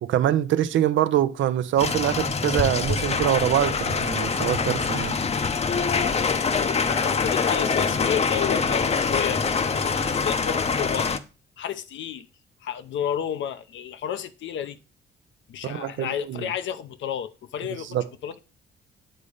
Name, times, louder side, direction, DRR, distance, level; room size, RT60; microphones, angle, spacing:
voice 1, 0.0-5.2 15.6-16.5 17.9-18.0, right 11 dB, 75° right, 0.7 m, -24 dB
sound 1, 1.8-11.2, left 5 dB, 30° left, 0.7 m, -24 dB
voice 2, 6.9-11.1 11.6-12.3 12.6-14.8 15.5-18.0 18.2-18.4, left 9 dB, 70° left, 0.8 m, -31 dB
8.9 x 4.1 x 5.0 m
cardioid pair, 90°, 20 cm